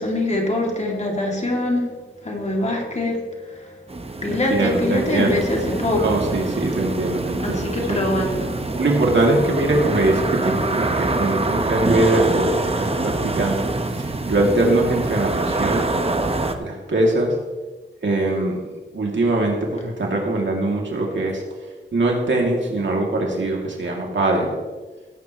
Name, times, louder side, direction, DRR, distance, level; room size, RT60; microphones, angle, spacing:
voice 1, 0.0-1.9 2.2-3.2 3.5-3.7 4.2-6.2 7.4-8.5, left 1 dB, 35° left, -1 dB, 2.7 m, -23 dB
sound 1, 3.9-16.6, right 2 dB, 30° right, 1.0 m, -25 dB
voice 2, 4.3-5.4 6.0-8.0 8.8-13.7 13.9-15.9 16.6-17.3 18.0-18.6 18.9-21.4 21.9-24.5, right 2 dB, 70° right, -1 dB, 2.8 m, -22 dB
17.5 x 8.9 x 3.2 m, 1.3 s
wide cardioid pair, 80°, 20 cm